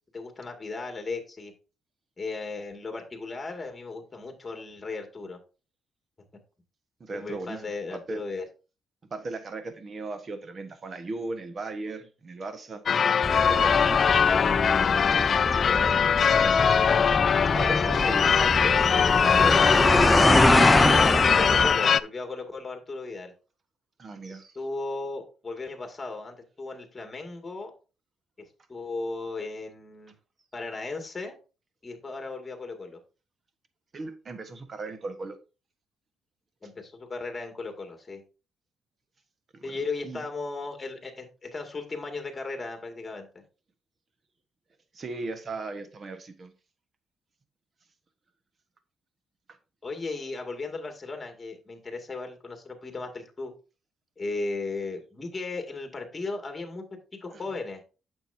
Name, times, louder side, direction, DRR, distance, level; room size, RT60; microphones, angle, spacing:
voice 1, 0.1-1.5 2.2-5.4 7.1-8.5 14.3-14.6 15.4-16.7 17.6-18.4 20.8-23.3 24.5-27.7 28.4-30.1 30.5-31.4 31.8-33.0 36.6-38.2 39.6-43.3 49.8-53.5 54.2-56.8 57.1-57.8, left 3 dB, 25° left, 2.3 m, -36 dB
voice 2, 7.0-7.6 7.9-8.2 9.1-12.8 13.5-14.1 17.5-18.9 19.4-19.8 24.0-24.6 33.9-35.4 39.5-39.7 40.0-40.2 44.9-46.5 57.3-57.4, right 3 dB, 40° right, 1.4 m, -37 dB
Church bell / Car / Alarm, 12.9-22.0, left 7 dB, 50° left, 0.3 m, -21 dB
sound 1, 13.2-21.7, left 1 dB, 10° left, 0.7 m, -25 dB
8.8 x 7.0 x 2.8 m
cardioid pair, 90°, 0 cm